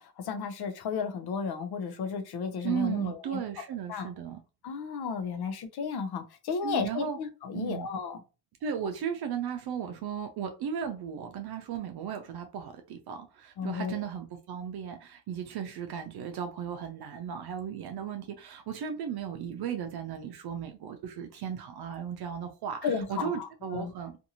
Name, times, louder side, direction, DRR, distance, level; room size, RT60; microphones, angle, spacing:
voice 1, 0.0-3.4 3.9-4.1 4.6-8.2 13.6-14.0 22.8-23.9, left 6 dB, 65° left, 0.7 m, -33 dB
voice 2, 2.6-4.4 6.6-7.2 7.5-7.9 8.6-24.3, right 8 dB, 65° right, 0.6 m, -36 dB
2.6 x 2.5 x 2.8 m
cardioid pair, 90°, 42 cm